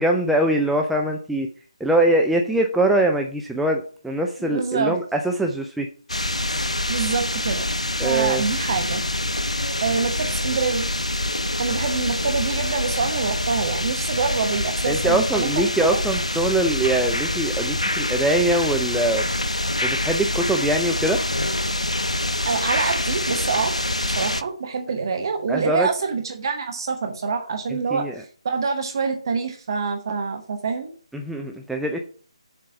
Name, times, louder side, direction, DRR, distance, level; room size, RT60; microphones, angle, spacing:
voice 1, 0.0-1.5 1.8-5.9 8.0-8.4 14.9-19.3 19.8-21.2 25.5-25.9 27.9-28.1 31.1-32.0, right 1 dB, ahead, 2 dB, 0.4 m, -22 dB
voice 2, 4.4-5.0 6.9-7.7 8.0-9.0 9.8-10.8 11.6-16.0 22.4-23.7 24.0-30.9, right 5 dB, 40° right, 5 dB, 1.0 m, -26 dB
sound 1, 6.1-24.4, left 1 dB, 85° left, 0.6 m, -25 dB
7.0 x 4.5 x 5.7 m, 0.43 s
figure-of-eight pair, 145°, 3 cm